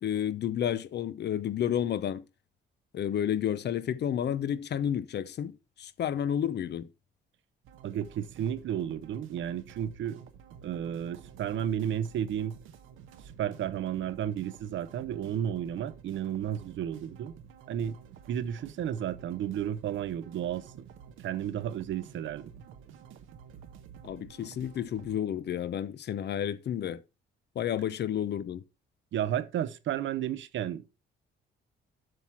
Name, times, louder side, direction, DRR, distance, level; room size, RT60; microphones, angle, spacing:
voice 1, 0.0-2.2 2.9-5.5 5.8-6.9 24.0-27.0 27.5-28.6, left 9 dB, 60° left, 0.8 m, -31 dB
sound 1, 7.6-25.2, right 7 dB, 90° right, 1.1 m, -51 dB
voice 2, 7.8-10.2 10.6-12.5 13.4-17.3 17.7-18.0 18.3-20.9 21.2-22.5 29.1-30.9, right 10 dB, 70° right, 0.8 m, -32 dB
7.8 x 5.8 x 4.5 m
cardioid pair, 90°, 20 cm